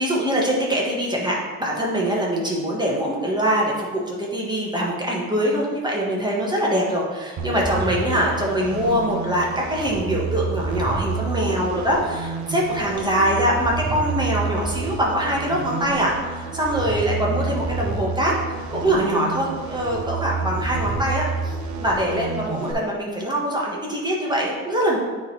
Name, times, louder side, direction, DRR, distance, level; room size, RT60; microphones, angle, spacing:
voice 1, 0.0-25.0, equal, 15° right, -3 dB, 1.7 m, -23 dB
sound 1, 7.4-22.7, right 4 dB, 70° right, 0.9 m, -29 dB
9.3 x 3.9 x 3.5 m, 1.4 s
cardioid pair, 90°, 30 cm